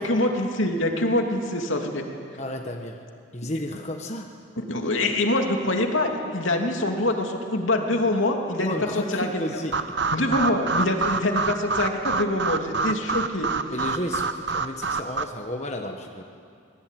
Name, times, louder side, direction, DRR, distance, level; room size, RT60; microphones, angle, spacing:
voice 1, 0.0-2.0 4.6-9.4 10.1-13.5, left 1 dB, 80° left, 2 dB, 2.9 m, -25 dB
voice 2, 2.4-3.0 3.3-4.3 8.6-9.7 13.7-16.2, left 1 dB, 35° left, 2 dB, 1.4 m, -32 dB
sound 1, 9.7-15.2, right 4 dB, 60° right, 0.9 m, -27 dB
25.0 x 20.0 x 9.3 m, 2.4 s
head